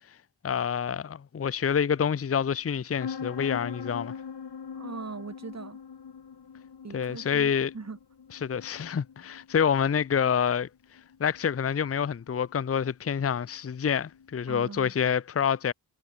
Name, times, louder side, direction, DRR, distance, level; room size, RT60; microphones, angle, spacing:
voice 1, 0.4-4.2 6.9-7.7 8.4-10.7 11.2-15.7, left 7 dB, 35° left, 0.7 m, -27 dB
sound 1, 3.0-14.5, left 6 dB, 70° left, 4.0 m, -43 dB
voice 2, 4.7-5.8 6.8-8.0 14.5-14.9, right 4 dB, 40° right, 3.1 m, -40 dB
wide cardioid pair, 145°, 42 cm